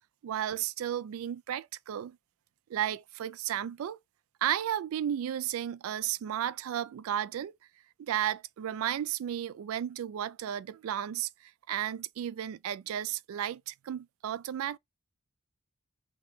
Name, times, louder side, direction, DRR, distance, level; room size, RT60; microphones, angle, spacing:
voice 1, 0.2-2.2 2.7-4.0 4.4-7.5 8.0-11.3 11.7-14.8, right 10 dB, 85° right, 0.3 m, -33 dB
3.1 x 2.9 x 4.1 m
head